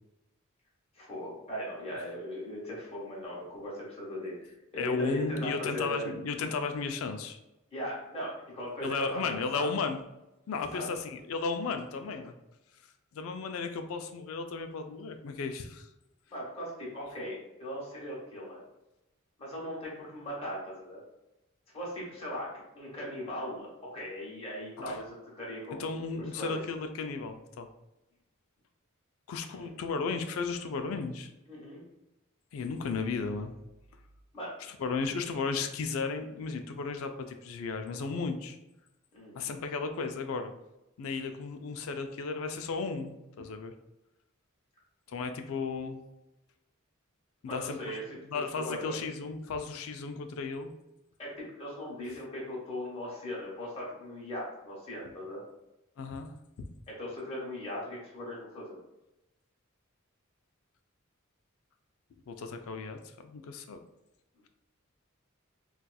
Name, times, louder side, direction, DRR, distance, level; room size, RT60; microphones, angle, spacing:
voice 1, 0.9-6.1 7.7-9.2 9.5-9.7 10.7-10.9 16.3-18.6 19.4-21.0 21.7-25.9 26.3-26.6 29.5-29.7 31.5-31.8 34.3-34.5 39.1-39.4 47.5-49.0 51.2-55.4 56.9-58.8, equal, 30° left, -6 dB, 1.2 m, -39 dB
voice 2, 4.8-7.4 8.8-10.0 10.5-12.3 13.1-15.9 24.8-25.0 25.8-27.7 29.3-31.3 32.5-33.5 34.8-38.6 39.3-40.5 41.0-43.7 45.1-46.0 47.4-47.8 48.3-50.7 56.0-56.3 62.3-63.8, left 4 dB, 80° left, 7 dB, 0.4 m, -34 dB
4.1 x 2.4 x 2.3 m, 0.94 s
head